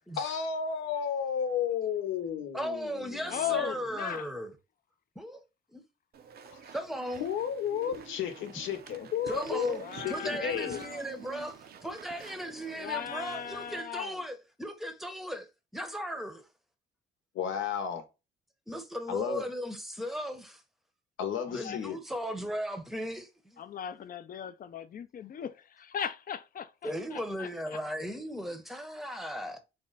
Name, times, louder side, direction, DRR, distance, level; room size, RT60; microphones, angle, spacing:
voice 1, 0.2-3.6 6.5-6.6 7.2-10.8 17.3-18.0 19.1-19.4 21.2-22.0, left 8 dB, 80° left, 0.9 m, -33 dB
voice 2, 2.5-4.5 5.2-5.4 5.7-5.8 6.7-7.2 9.3-9.8 10.1-15.5 15.7-16.5 18.7-20.6 21.3-23.6 26.8-29.6, equal, ahead, 0.7 m, -37 dB
voice 3, 3.3-4.3 9.8-11.1 12.7-14.2 21.5-21.8 23.6-27.5, left 9 dB, 45° left, 0.5 m, -37 dB
Walk footsteps / Chatter / Squeak, 6.1-13.8, right 7 dB, 50° right, 0.5 m, -49 dB
4.3 x 2.1 x 3.9 m
cardioid pair, 90°, 20 cm